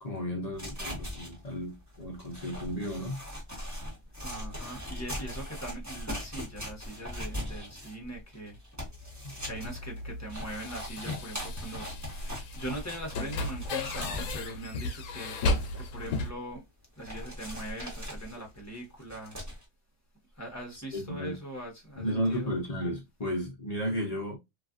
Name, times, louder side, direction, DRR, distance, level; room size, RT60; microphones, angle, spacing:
voice 1, 0.0-3.2 9.2-9.3 20.9-21.4 22.0-24.4, equal, 45° left, 0.5 m, -33 dB
sound 1, 0.5-14.7 15.1-15.2 15.5-16.5 17.0-19.6, left 1 dB, 10° right, 1.2 m, -40 dB
voice 2, 4.2-8.6 9.4-12.0 12.2-16.6 17.0-19.4 20.4-22.5, right 1 dB, 15° left, 0.9 m, -41 dB
sound 2, 8.9-16.3, left 2 dB, 70° left, 0.9 m, -35 dB
3.0 x 2.4 x 2.4 m
omnidirectional pair, 1.5 m